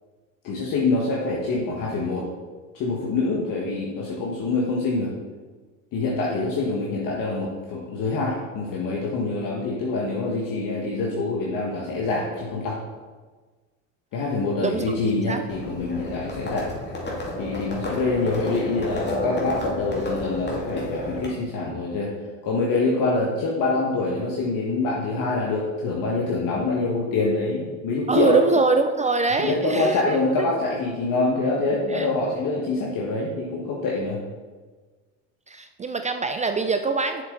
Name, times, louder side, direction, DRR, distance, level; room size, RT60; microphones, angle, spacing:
voice 1, 0.4-2.3 2.7-5.1 5.9-12.8 14.1-16.7 17.4-22.1 22.4-28.4 29.4-34.2, left 3 dB, 55° left, -3 dB, 1.5 m, -25 dB
Livestock farm animals working animals, 15.5-21.3, left 1 dB, 25° left, 2.3 m, -31 dB
voice 2, 28.1-30.5 31.9-32.1 35.5-37.2, right 4 dB, 20° right, 7 dB, 0.4 m, -24 dB
7.2 x 6.9 x 3.9 m, 1.4 s
supercardioid pair, 95°, 39 cm